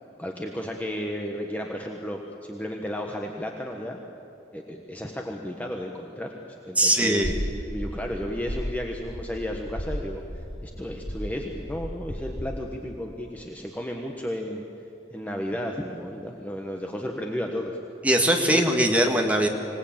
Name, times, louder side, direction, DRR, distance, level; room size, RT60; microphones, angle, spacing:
voice 1, 0.2-4.0 4.5-6.3 6.7-7.3 7.7-10.2 10.6-14.6 15.1-17.8 18.5-18.6, equal, 10° left, 1 dB, 1.3 m, -33 dB
voice 2, 6.8-7.3 18.0-19.5, right 1 dB, 10° right, 2 dB, 1.9 m, -21 dB
sound 1, 7.2-12.5, equal, 25° left, 3.8 m, -35 dB
25.5 x 18.5 x 8.8 m, 2.8 s
head